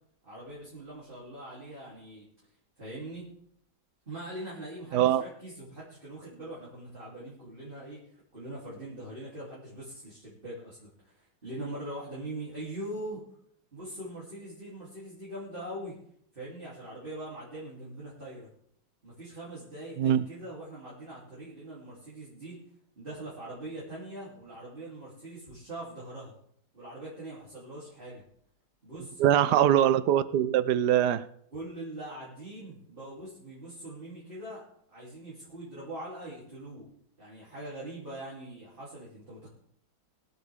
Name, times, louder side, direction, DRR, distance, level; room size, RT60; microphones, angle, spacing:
voice 1, 0.2-2.3 2.8-3.3 4.0-8.0 8.3-13.2 13.7-16.0 16.3-18.5 19.0-22.6 23.0-26.3 26.7-28.2 28.8-29.7 31.5-34.6 34.9-36.9 37.2-39.5, right 1 dB, 30° right, -7 dB, 3.3 m, -42 dB
voice 2, 29.2-31.2, right 11 dB, 70° right, 15 dB, 1.1 m, -23 dB
22.5 x 8.1 x 3.6 m, 0.68 s
omnidirectional pair, 2.0 m